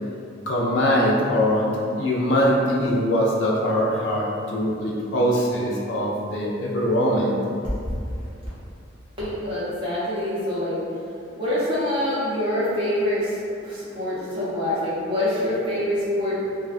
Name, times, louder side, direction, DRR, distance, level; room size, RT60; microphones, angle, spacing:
voice 1, 0.5-1.7 2.0-4.2 4.5-7.3, equal, 60° left, -3 dB, 0.4 m, -22 dB
voice 2, 9.2-10.8 11.4-16.4, left 1 dB, 25° right, -11 dB, 0.8 m, -25 dB
2.6 x 2.2 x 2.4 m, 2.5 s
head